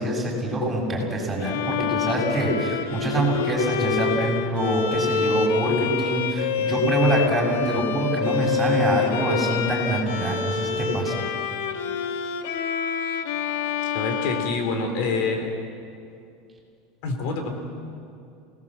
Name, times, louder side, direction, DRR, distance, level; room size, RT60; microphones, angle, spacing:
voice 1, 0.0-11.1, right 1 dB, 15° right, -1 dB, 6.6 m, -25 dB
Bowed string instrument, 1.4-15.3, left 7 dB, 85° left, 1.6 m, -27 dB
voice 2, 13.9-15.5 17.0-17.5, left 3 dB, 65° left, 5 dB, 4.3 m, -26 dB
28.0 x 19.0 x 7.5 m, 2.5 s
supercardioid pair, 135°, 0 cm